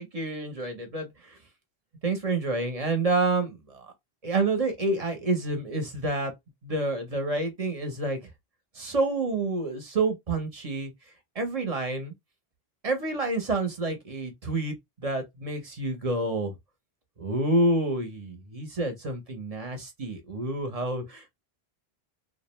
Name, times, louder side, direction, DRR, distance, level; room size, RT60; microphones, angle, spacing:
voice 1, 0.0-1.4 2.0-3.9 4.2-6.3 6.6-8.2 8.7-10.9 11.3-12.1 12.8-16.5 17.2-21.3, right 2 dB, 40° right, 0.7 m, -28 dB
2.4 x 2.1 x 2.9 m
omnidirectional pair, 1.1 m